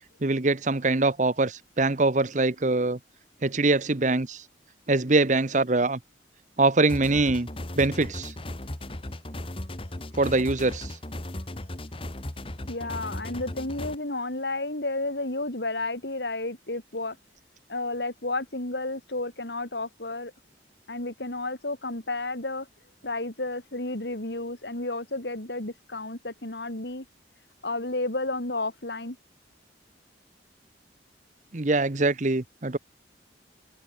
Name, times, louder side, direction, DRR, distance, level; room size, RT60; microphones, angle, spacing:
voice 1, 0.2-3.0 3.4-4.4 4.9-6.0 6.6-7.5 7.7-8.3 10.2-10.9 31.5-32.8, right 2 dB, 45° right, 1.0 m, -23 dB
sound 1, 6.9-14.0, left 1 dB, 30° left, 1.7 m, -36 dB
voice 2, 12.7-17.2 17.7-20.3 20.9-22.7 23.0-27.0 27.6-29.2, left 2 dB, 70° left, 3.4 m, -32 dB
head